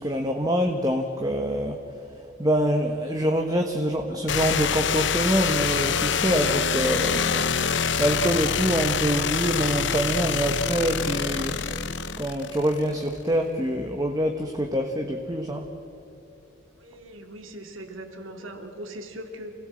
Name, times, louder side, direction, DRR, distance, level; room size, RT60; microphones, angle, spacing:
voice 1, 0.0-1.8 2.4-7.5 8.0-11.6 12.2-15.7, equal, 20° right, 3 dB, 1.3 m, -25 dB
sound 1, 4.3-13.0, left 6 dB, 65° left, 0.9 m, -26 dB
voice 2, 16.8-19.5, right 1 dB, 85° right, 5 dB, 2.6 m, -40 dB
28.0 x 17.0 x 7.8 m, 2.9 s
head